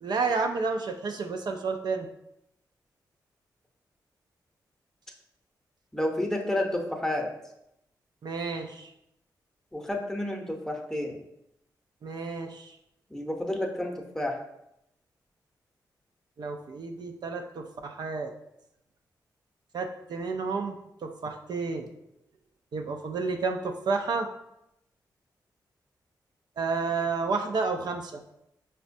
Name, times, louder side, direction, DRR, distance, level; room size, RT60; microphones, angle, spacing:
voice 1, 0.0-2.1 8.2-8.9 12.0-12.7 16.4-18.3 19.7-20.7 21.0-21.9 22.7-24.3 26.6-28.2, right 4 dB, 65° right, 4 dB, 0.4 m, -31 dB
voice 2, 5.9-7.3 9.7-11.2 13.1-14.4, left 1 dB, 5° left, 1 dB, 0.7 m, -30 dB
4.8 x 2.2 x 2.6 m, 0.82 s
cardioid pair, 55°, 8 cm